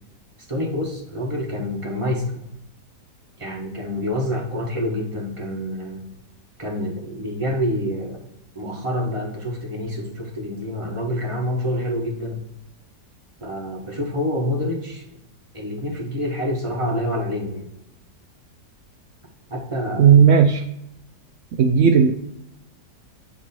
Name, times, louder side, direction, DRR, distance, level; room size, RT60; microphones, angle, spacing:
voice 1, 0.5-2.4 3.4-6.1 6.6-8.2 8.5-12.4 13.4-15.0 15.5-17.7 19.5-20.3, left 1 dB, 20° right, -1 dB, 1.2 m, -27 dB
voice 2, 20.0-20.6 21.6-22.1, right 7 dB, 75° right, 6 dB, 0.6 m, -14 dB
8.3 x 3.0 x 4.2 m, 0.79 s
omnidirectional pair, 1.8 m